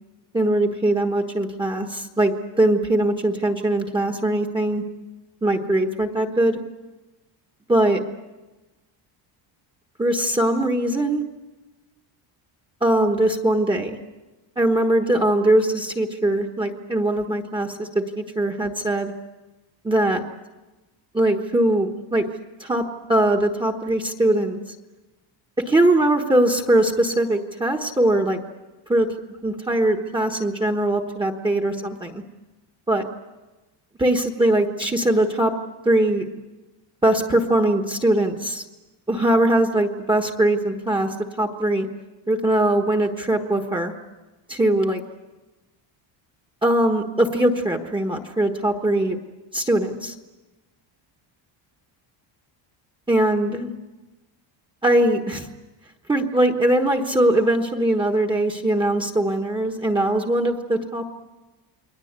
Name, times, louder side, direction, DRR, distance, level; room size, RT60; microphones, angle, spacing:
voice 1, 0.3-4.8 5.4-6.6 7.7-8.0 10.0-11.2 12.8-14.0 14.6-19.1 19.8-20.2 21.1-22.3 22.6-22.8 23.1-24.6 25.7-28.4 28.9-29.1 29.4-32.2 32.9-33.1 34.0-35.5 35.8-36.2 37.0-38.6 39.1-41.1 41.4-41.9 42.3-43.9 44.5-45.0 46.6-49.2 49.5-50.1 53.1-53.7 54.8-55.5 56.1-61.0, right 1 dB, 10° right, 3 dB, 1.3 m, -21 dB
29.0 x 22.0 x 8.2 m, 1.1 s
cardioid pair, 170°, 49 cm